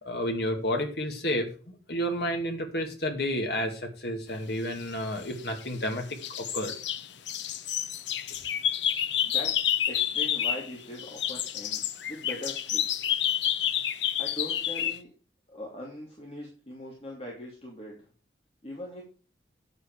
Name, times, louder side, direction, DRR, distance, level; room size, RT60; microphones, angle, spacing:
voice 1, 0.0-6.7, equal, 60° left, 2.4 m, -31 dB
sound 1, 5.1-5.9 6.2-10.7 11.0-15.0, left 10 dB, 80° left, 0.8 m, -29 dB
voice 2, 9.2-9.6 9.9-11.8 12.1-12.8 14.2-15.1 15.5-18.1 18.6-19.0, equal, 35° left, 2.7 m, -41 dB
9.5 x 8.2 x 4.8 m
head